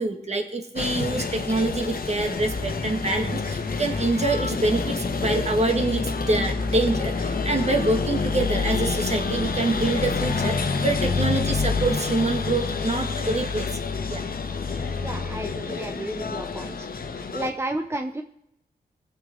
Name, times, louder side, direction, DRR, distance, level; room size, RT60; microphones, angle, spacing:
voice 1, 0.0-13.8 14.1-14.2, right 2 dB, 40° right, 4 dB, 1.7 m, -26 dB
sound 1, 0.8-17.5, left 4 dB, 60° left, 1.1 m, -27 dB
voice 2, 15.0-16.9 17.3-18.2, right 1 dB, 15° right, 5 dB, 0.8 m, -32 dB
16.5 x 6.8 x 3.8 m, 0.80 s
cardioid pair, 55°, 17 cm